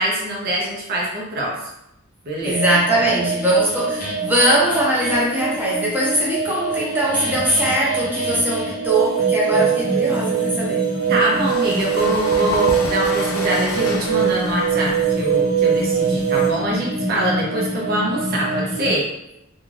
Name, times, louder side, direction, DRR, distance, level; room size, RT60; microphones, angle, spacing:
voice 1, 0.0-1.6 2.3-2.6 3.0-3.1 11.1-19.1, right 1 dB, 45° right, -3 dB, 0.5 m, -24 dB
sound 1, 2.4-18.9, right 2 dB, 40° left, 0.7 m, -27 dB
voice 2, 2.4-10.9, right 1 dB, 10° right, -6 dB, 0.7 m, -20 dB
sound 2, 8.9-16.5, right 9 dB, 85° right, 0.9 m, -22 dB
sound 3, 11.2-16.7, left 2 dB, 85° left, 0.4 m, -31 dB
2.4 x 2.2 x 3.1 m, 0.83 s
head